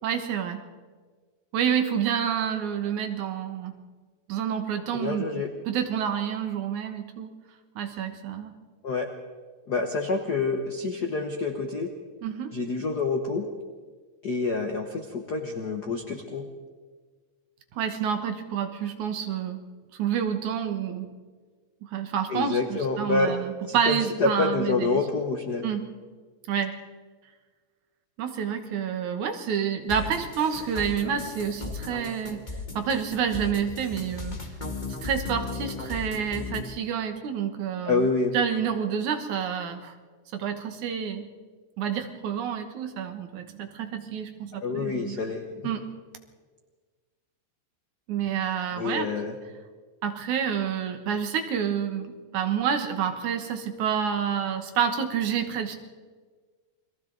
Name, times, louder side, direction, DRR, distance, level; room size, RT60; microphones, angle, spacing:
voice 1, 0.0-0.6 1.5-3.7 4.3-5.2 5.7-7.3 7.8-8.6 12.2-12.5 17.8-19.6 20.0-21.1 21.8-25.0 25.6-25.8 26.5-26.8 28.2-32.4 32.8-34.4 35.0-38.1 38.3-39.9 40.3-41.3 41.8-45.2 45.6-45.8 48.1-49.1 50.0-52.1 52.3-55.8, right 8 dB, 70° right, 7 dB, 2.6 m, -28 dB
voice 2, 4.9-5.5 8.8-9.1 9.7-11.9 12.5-13.4 14.2-16.5 22.3-23.4 23.7-25.7 37.8-38.3 44.6-45.4 48.8-49.3, left 3 dB, 60° left, 4 dB, 1.0 m, -27 dB
sound 1, 29.9-36.6, left 3 dB, 20° left, 1.4 m, -36 dB
29.5 x 22.0 x 4.0 m, 1.5 s
omnidirectional pair, 3.8 m